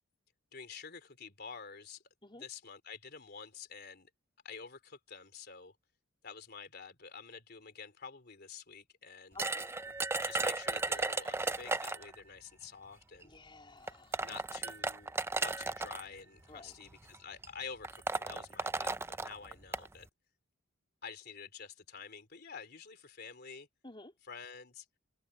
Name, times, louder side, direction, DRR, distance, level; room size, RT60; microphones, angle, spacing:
voice 1, 0.5-2.0 2.4-4.1 4.4-5.7 6.2-9.4 10.2-13.3 14.2-20.1 21.0-23.7 24.2-24.8, left 6 dB, 55° left, 3.4 m, -49 dB
voice 2, 9.3-9.7 13.2-14.2 16.5-16.7 23.8-24.1, left 2 dB, 25° left, 3.7 m, -53 dB
sound 1, 9.4-12.1 13.2-13.3 13.9-16.0 16.9-17.2 17.4-17.5 17.8-19.9, right 3 dB, 15° right, 0.5 m, -35 dB
head